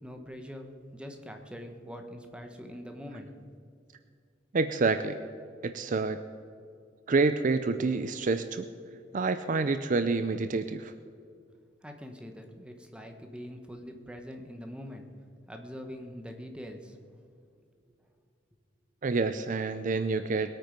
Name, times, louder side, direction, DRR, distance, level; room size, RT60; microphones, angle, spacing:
voice 1, 0.0-3.3 11.8-15.0 15.5-17.0, equal, 5° right, 4 dB, 1.2 m, -43 dB
voice 2, 4.5-5.2 5.6-6.2 7.1-8.6 9.1-10.9 19.0-20.6, right 3 dB, 45° right, 10 dB, 0.5 m, -28 dB
21.0 x 9.0 x 5.3 m, 2.3 s
head